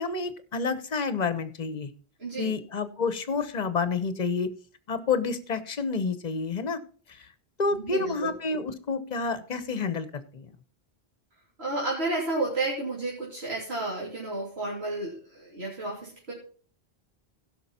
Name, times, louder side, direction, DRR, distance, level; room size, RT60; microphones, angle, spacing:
voice 1, 0.0-1.9 2.4-4.5 4.9-6.8 7.1-7.3 7.6-10.5, left 4 dB, 45° left, 13 dB, 0.9 m, -29 dB
voice 2, 2.2-2.5 7.7-8.3 11.6-16.3, right 2 dB, 90° right, -5 dB, 3.3 m, -31 dB
16.0 x 6.0 x 4.2 m, 0.42 s
omnidirectional pair, 1.0 m